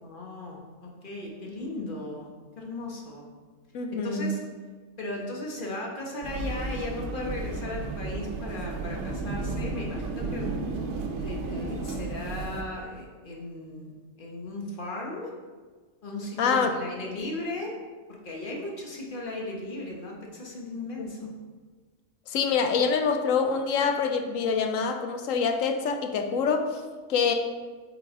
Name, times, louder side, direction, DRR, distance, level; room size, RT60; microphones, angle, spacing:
voice 1, 0.0-2.3 2.6-3.2 3.9-4.4 5.0-10.5 11.2-13.9 14.2-15.3 16.0-17.7 18.2-21.3, left 2 dB, 40° left, -1 dB, 1.2 m, -36 dB
voice 2, 3.7-4.4 16.4-16.7 21.0-21.3 22.3-26.8 27.1-27.3, left 5 dB, 80° left, 6 dB, 1.0 m, -26 dB
sound 1, 6.2-12.6, right 3 dB, 65° right, 1.0 m, -33 dB
7.5 x 4.2 x 3.7 m, 1.4 s
omnidirectional pair, 1.4 m